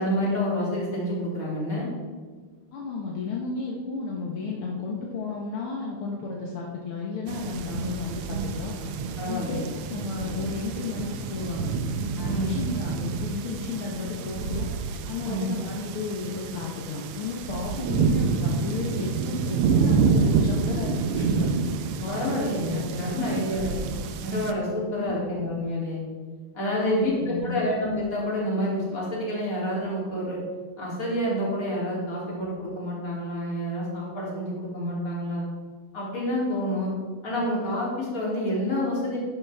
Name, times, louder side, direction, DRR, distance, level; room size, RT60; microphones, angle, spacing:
voice 1, 0.0-1.9 9.2-9.7 12.2-12.6 15.2-15.5 22.1-24.0 24.2-26.0 26.5-30.4 30.8-35.4 35.9-36.9 37.2-39.2, equal, 40° left, -5 dB, 3.7 m, -28 dB
voice 2, 2.7-8.7 9.2-11.7 12.2-14.7 15.1-21.5 22.0-23.6 25.1-25.3 26.8-27.7, left 4 dB, 75° left, -2 dB, 2.1 m, -33 dB
sound 1, 7.3-24.5, right 5 dB, 90° right, 1.7 m, -28 dB
11.5 x 10.5 x 3.6 m, 1.5 s
omnidirectional pair, 2.4 m